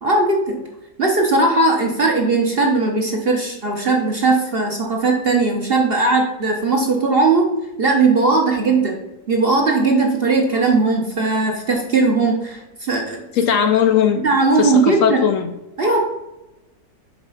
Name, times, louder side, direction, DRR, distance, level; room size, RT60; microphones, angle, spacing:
voice 1, 0.0-0.6 1.0-7.5 7.8-8.9 9.3-13.2 14.2-15.2 15.8-16.0, right 3 dB, 45° right, 1 dB, 1.0 m, -18 dB
voice 2, 13.3-14.2 14.6-15.5, left 8 dB, 65° left, 8 dB, 0.8 m, -18 dB
7.2 x 4.3 x 5.5 m, 0.96 s
omnidirectional pair, 1.7 m